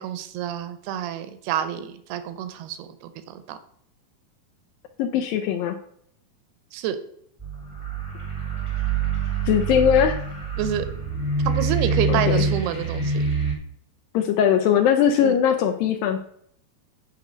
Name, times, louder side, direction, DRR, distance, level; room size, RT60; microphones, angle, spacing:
voice 1, 0.0-3.6 6.7-7.0 10.6-10.9 11.5-13.2 15.2-15.4, right 9 dB, 85° right, 10 dB, 2.7 m, -28 dB
voice 2, 5.0-5.8 9.5-10.2 12.1-12.4 14.1-16.2, left 9 dB, 80° left, 5 dB, 2.2 m, -20 dB
sound 1, 7.4-13.5, right 4 dB, 35° left, 0.4 m, -25 dB
8.7 x 4.6 x 6.3 m, 0.66 s
omnidirectional pair, 4.5 m